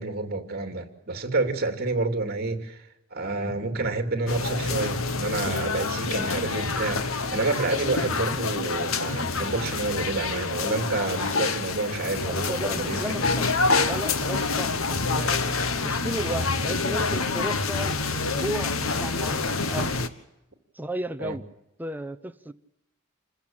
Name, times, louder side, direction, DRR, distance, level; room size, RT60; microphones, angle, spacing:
voice 1, 0.0-13.3 21.2-21.4, right 3 dB, 50° right, 2.8 m, -29 dB
sound 1, 4.3-20.1, left 4 dB, 75° left, 1.4 m, -27 dB
voice 2, 12.3-13.5 13.9-15.5 15.8-19.9 20.7-21.5 21.8-22.5, right 1 dB, 10° right, 0.8 m, -34 dB
27.5 x 15.0 x 8.8 m
head